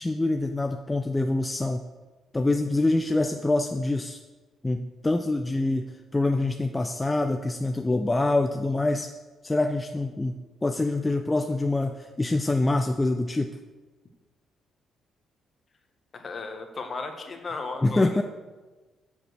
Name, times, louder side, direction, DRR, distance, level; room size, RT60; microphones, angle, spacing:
voice 1, 0.0-1.9 2.3-4.2 4.6-9.1 9.4-13.6 17.8-18.2, left 2 dB, 15° left, 6 dB, 0.5 m, -25 dB
voice 2, 16.1-18.2, left 3 dB, 40° left, 5 dB, 1.4 m, -35 dB
7.8 x 7.2 x 6.5 m, 1.3 s
cardioid pair, 90°, 0 cm